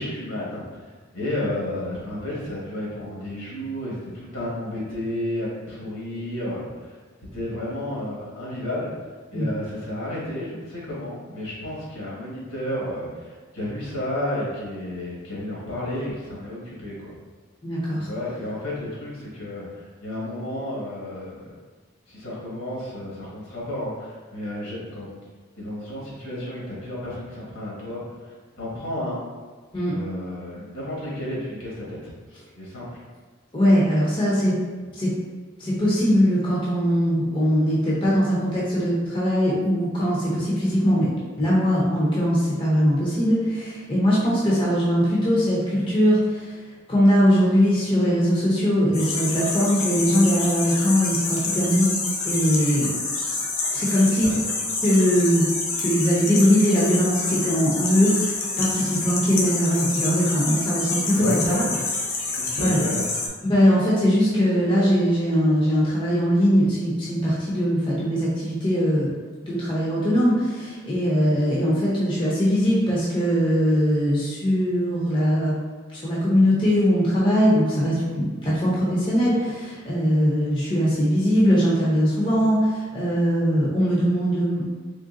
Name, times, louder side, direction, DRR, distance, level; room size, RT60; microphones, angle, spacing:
voice 1, 0.0-7.0 7.3-8.9 9.3-17.1 17.9-21.5 22.1-25.1 25.6-29.2 29.8-32.1 32.5-33.0 54.1-54.5 61.1-61.9 62.3-63.1, left 1 dB, 70° left, -6 dB, 1.4 m, -32 dB
voice 2, 17.6-18.1 29.7-29.9 33.5-34.6 34.9-35.1 35.6-41.1 41.4-46.6 46.9-51.9 52.2-52.9 53.7-54.3 54.8-55.5 55.8-61.6 62.6-62.8 63.4-69.1 69.4-75.6 75.9-84.6, equal, 25° left, -7 dB, 0.6 m, -21 dB
sound 1, 48.9-63.3, left 3 dB, 90° left, 0.7 m, -28 dB
3.8 x 3.3 x 2.5 m, 1.4 s
head